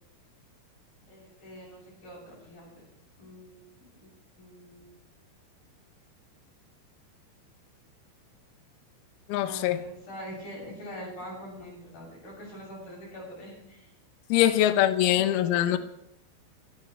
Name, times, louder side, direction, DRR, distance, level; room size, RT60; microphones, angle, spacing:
voice 1, 1.1-2.8 3.2-4.9 9.4-13.9 14.4-14.5 15.0-15.8, equal, 45° left, 9.3 m, -44 dB
voice 2, 9.3-9.8 14.3-15.8, left 12 dB, 85° left, 2.2 m, -23 dB
23.5 x 13.0 x 3.4 m
omnidirectional pair, 5.6 m